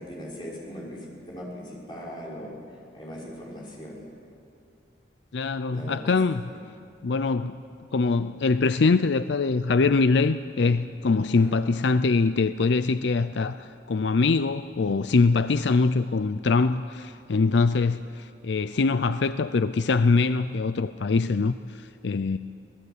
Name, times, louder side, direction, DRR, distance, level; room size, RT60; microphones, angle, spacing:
voice 1, 0.0-2.5 2.9-4.0 5.7-6.0 6.5-6.6 11.2-11.6, equal, 25° left, -5 dB, 5.8 m, -39 dB
voice 2, 5.3-6.5 7.0-7.6 7.9-22.4, left 4 dB, 70° left, 12 dB, 0.5 m, -23 dB
27.0 x 18.0 x 8.2 m, 2.5 s
head